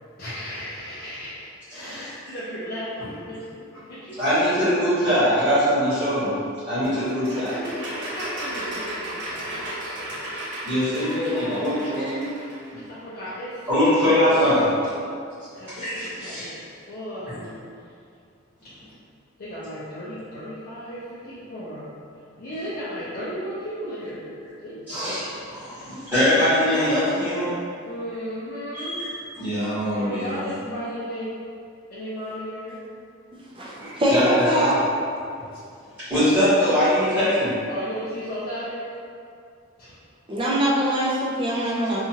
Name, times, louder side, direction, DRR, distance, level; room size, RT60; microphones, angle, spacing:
voice 1, 0.2-4.5 7.3-10.3 11.7-11.9 12.7-13.7 15.5-15.9 16.2-17.7 18.6-18.7 19.4-21.9 22.4-25.1 25.4-25.5 27.8-29.0 29.9-31.3 31.9-32.8 37.7-38.9 39.8-40.0, equal, 45° left, -11 dB, 0.5 m, -35 dB
voice 2, 1.7-2.0 4.2-6.3 6.7-7.5 10.6-12.3 13.7-14.7 15.7-16.5 24.9-25.3 25.6-27.6 28.7-29.1 29.4-30.3 33.8-34.8 36.0-37.6, equal, 10° right, -19 dB, 1.3 m, -22 dB
sound 1, 7.0-12.7, right 1 dB, 60° right, 0.7 m, -34 dB
voice 3, 33.6-34.7 40.3-42.0, equal, 25° right, -5 dB, 0.4 m, -23 dB
2.8 x 2.3 x 2.7 m, 2.4 s
head